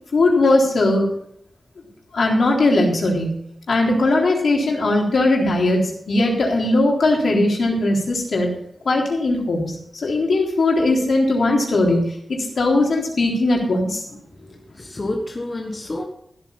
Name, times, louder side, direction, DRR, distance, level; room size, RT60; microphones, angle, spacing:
voice 1, 0.1-1.1 2.1-3.3 3.7-8.5 8.9-12.0 12.3-14.2, left 2 dB, 70° left, -1 dB, 3.7 m, -19 dB
voice 2, 14.4-16.0, left 1 dB, 30° left, 1 dB, 1.5 m, -29 dB
15.0 x 8.5 x 5.5 m, 0.73 s
wide cardioid pair, 140°, 0 cm